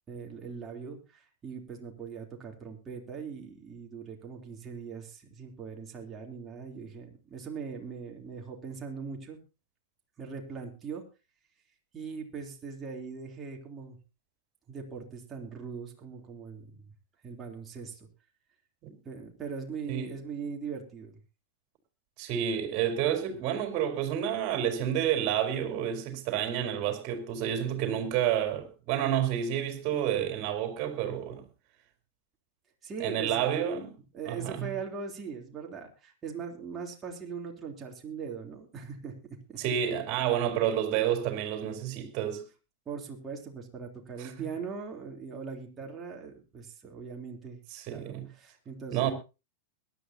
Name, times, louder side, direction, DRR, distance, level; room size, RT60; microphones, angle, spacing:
voice 1, 0.1-9.4 10.2-11.0 11.9-14.0 14.7-16.7 17.2-18.1 19.1-21.1 32.8-33.6 34.1-39.1 39.5-39.6 42.9-47.6 47.9-49.1, right 5 dB, 25° right, 3.5 m, -40 dB
voice 2, 22.2-31.4 33.0-33.9 34.3-34.7 39.6-42.4 44.2-44.3 47.7-48.2 48.9-49.1, right 10 dB, 45° right, 4.3 m, -29 dB
21.5 x 11.5 x 2.9 m
hypercardioid pair, 100°, 0 cm